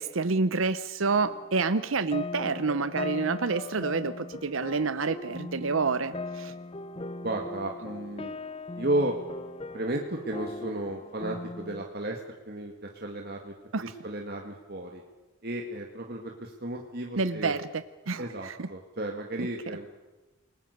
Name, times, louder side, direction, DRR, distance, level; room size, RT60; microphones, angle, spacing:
voice 1, 0.0-6.5 13.7-13.8 17.2-18.7 19.4-19.5, right 4 dB, 75° right, 13 dB, 0.8 m, -28 dB
sound 1, 1.1-11.8, left 3 dB, 25° left, 0.7 m, -39 dB
voice 2, 7.2-8.3 8.8-9.2 9.7-12.2 12.5-15.0 15.4-17.6 18.2-20.0, right 1 dB, 50° right, 1 dB, 2.1 m, -33 dB
28.5 x 20.0 x 6.7 m, 1.1 s
head